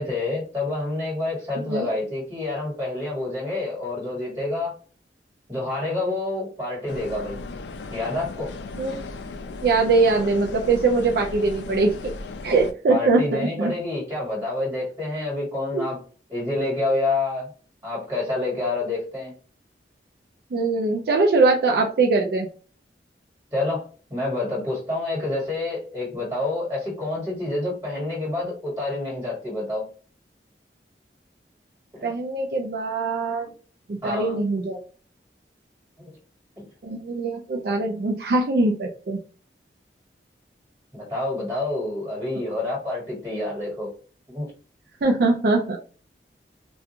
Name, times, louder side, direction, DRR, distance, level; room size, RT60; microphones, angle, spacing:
voice 1, 0.0-4.7 5.5-7.4 7.9-8.5 12.9-16.0 16.3-17.5 17.8-19.3 23.5-23.8 24.1-29.8 31.9-32.0 34.0-34.4 36.0-36.1 40.9-43.9 44.3-44.5, left 2 dB, 20° right, -4 dB, 1.5 m, -28 dB
voice 2, 1.6-2.0 8.8-9.0 9.6-12.1 12.4-13.7 15.7-15.8 20.5-22.5 32.0-33.5 33.9-34.8 36.8-39.2 45.0-45.8, right 3 dB, 60° right, 0 dB, 0.4 m, -22 dB
sound 1, 6.9-12.7, left 3 dB, 80° left, 0.3 m, -36 dB
2.4 x 2.3 x 2.7 m, 0.39 s
head